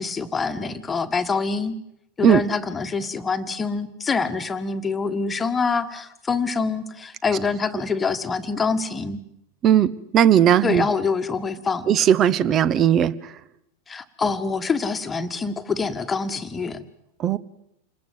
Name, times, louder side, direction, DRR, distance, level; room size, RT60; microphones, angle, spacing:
voice 1, 0.0-1.8 2.2-9.2 10.6-11.9 13.9-16.8, left 4 dB, 15° left, 10 dB, 1.6 m, -25 dB
voice 2, 9.6-10.9 11.9-13.1 17.2-17.4, right 10 dB, 30° right, 18 dB, 1.0 m, -17 dB
28.0 x 20.0 x 7.9 m, 0.77 s
figure-of-eight pair, 90°, 0 cm